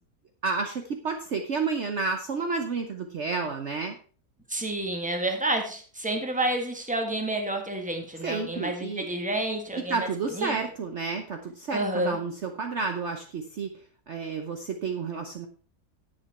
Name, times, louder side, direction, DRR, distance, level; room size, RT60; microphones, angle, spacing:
voice 1, 0.4-4.0 8.2-9.1 9.9-13.7 14.1-15.5, right 4 dB, 50° right, 5 dB, 1.1 m, -30 dB
voice 2, 4.5-10.1 10.3-10.5 11.7-12.2, right 1 dB, 5° right, 3 dB, 1.6 m, -29 dB
10.5 x 8.2 x 4.2 m, 0.40 s
omnidirectional pair, 1.7 m